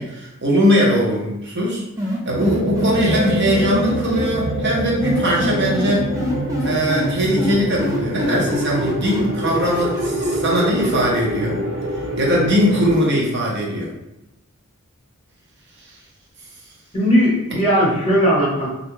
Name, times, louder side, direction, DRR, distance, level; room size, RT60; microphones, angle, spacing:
voice 1, 0.0-1.8 2.3-6.1 6.6-11.6 12.2-13.9, equal, 50° right, -3 dB, 0.8 m, -20 dB
sound 1, 2.0-4.2 5.0-7.1 7.4-10.9, equal, 15° right, 0.4 m, -25 dB
sound 2, 2.3-13.0, equal, 85° right, 0.8 m, -26 dB
voice 2, 16.9-18.8, equal, 25° left, -5 dB, 0.9 m, -17 dB
2.5 x 2.1 x 3.1 m, 0.91 s
head